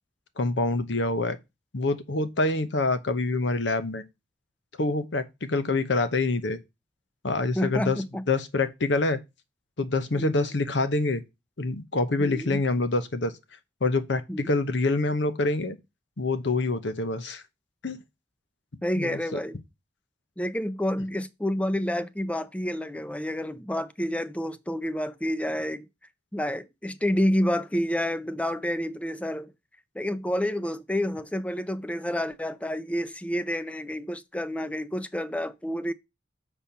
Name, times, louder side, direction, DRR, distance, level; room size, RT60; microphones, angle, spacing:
voice 1, 0.4-1.4 1.7-4.0 4.8-6.6 7.2-9.2 9.8-11.2 11.6-13.4 13.8-15.8 16.2-17.4 17.8-18.0 19.0-19.4, left 2 dB, 70° left, 0.9 m, -26 dB
voice 2, 7.5-8.3 10.2-10.5 12.2-12.6 14.3-14.4 18.8-19.6 20.4-25.9 26.3-29.5 29.9-35.9, equal, 5° left, 0.5 m, -29 dB
6.9 x 4.4 x 5.6 m
head